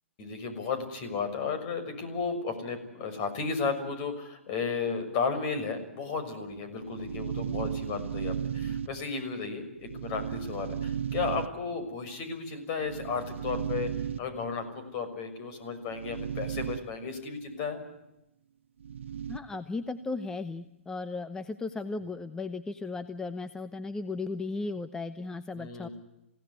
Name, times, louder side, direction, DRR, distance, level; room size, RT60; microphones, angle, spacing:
voice 1, 0.2-17.8 25.5-25.9, left 5 dB, 40° left, 9 dB, 6.1 m, -34 dB
sound 1, 6.5-9.3 9.8-11.9 12.8-14.6 15.8-16.8 17.1-17.2 18.8-19.6, right 8 dB, 65° right, 1.4 m, -35 dB
voice 2, 19.3-25.9, left 3 dB, 10° left, 11 dB, 0.9 m, -36 dB
27.5 x 17.0 x 9.7 m, 0.91 s
hypercardioid pair, 125°, 7 cm